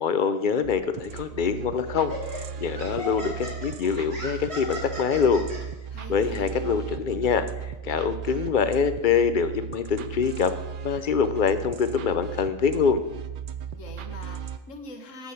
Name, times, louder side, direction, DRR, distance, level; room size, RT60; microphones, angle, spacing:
voice 1, 0.0-5.4 6.1-10.5 10.8-13.0, left 6 dB, 50° left, 11 dB, 0.6 m, -25 dB
sound 1, 0.6-14.6, right 7 dB, 65° right, 0.5 m, -37 dB
Laughter, 1.1-1.3 1.9-5.6, equal, 50° right, 4.4 m, -37 dB
voice 2, 5.9-6.5 13.7-15.3, left 2 dB, 70° left, 6 dB, 1.5 m, -43 dB
8.5 x 6.3 x 7.8 m, 1.0 s
omnidirectional pair, 1.4 m